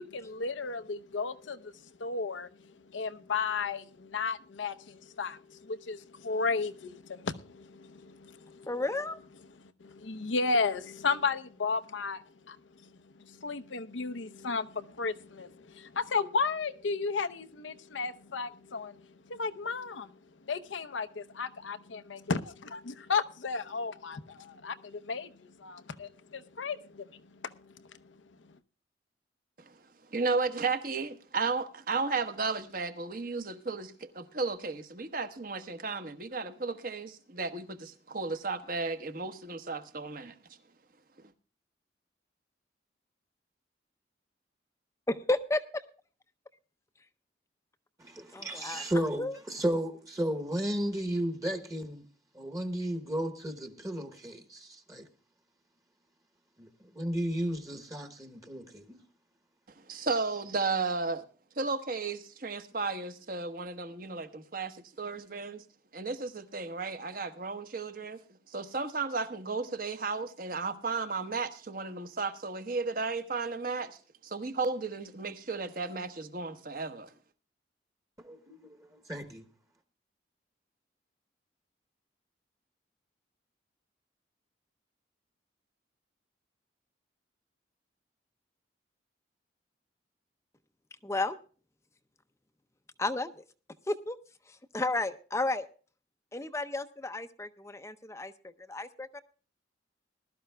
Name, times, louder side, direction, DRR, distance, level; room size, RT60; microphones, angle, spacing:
voice 1, 0.0-1.7 2.0-2.5 2.9-8.7 9.8-12.6 12.8-12.9 13.2-20.1 20.5-27.7, left 4 dB, 85° left, 0.7 m, -34 dB
voice 2, 8.7-9.2 45.3-45.6 48.3-48.8 49.2-49.4 91.0-91.4 93.0-93.4 93.9-94.2 94.5-95.7 96.3-99.2, left 2 dB, 15° left, 0.5 m, -32 dB
voice 3, 30.1-40.3 41.2-41.3 59.9-61.3 61.6-65.6 65.9-68.2 68.5-74.0 74.2-77.1, right 4 dB, 50° right, 1.0 m, -34 dB
voice 4, 48.0-52.0 52.3-55.1 56.6-56.7 56.9-59.0 59.9-60.0 78.2-79.5, right 1 dB, 20° right, 1.0 m, -34 dB
20.0 x 12.5 x 2.2 m
head